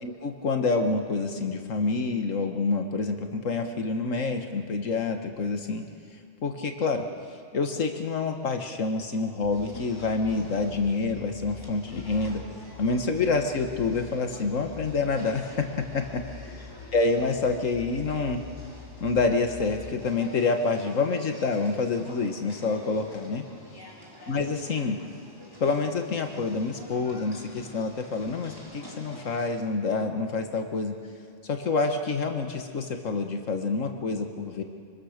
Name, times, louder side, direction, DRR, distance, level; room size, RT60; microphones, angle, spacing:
voice 1, 0.0-5.8 6.4-7.1 7.5-12.4 12.8-16.2 16.9-18.4 19.0-23.5 24.3-25.0 25.6-30.9 31.4-34.6, left 4 dB, 80° left, 5 dB, 1.9 m, -27 dB
sound 1, 9.4-19.9, left 5 dB, 60° right, 2.4 m, -45 dB
sound 2, 9.5-29.5, equal, 15° left, 3.2 m, -48 dB
25.0 x 23.5 x 6.6 m, 2.4 s
omnidirectional pair, 1.3 m